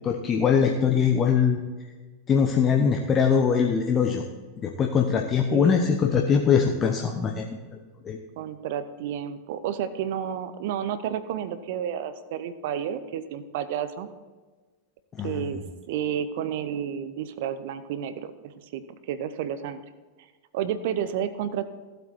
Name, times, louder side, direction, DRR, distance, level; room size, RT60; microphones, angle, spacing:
voice 1, 0.0-1.6 2.3-4.2 4.6-7.5 8.0-8.2 15.1-15.5, left 6 dB, 25° left, 3 dB, 0.9 m, -22 dB
voice 2, 8.4-14.1 15.2-15.6 15.9-19.8 20.5-21.7, right 9 dB, 50° right, 13 dB, 0.7 m, -31 dB
15.0 x 8.0 x 4.4 m, 1.4 s
figure-of-eight pair, 90°, 0 cm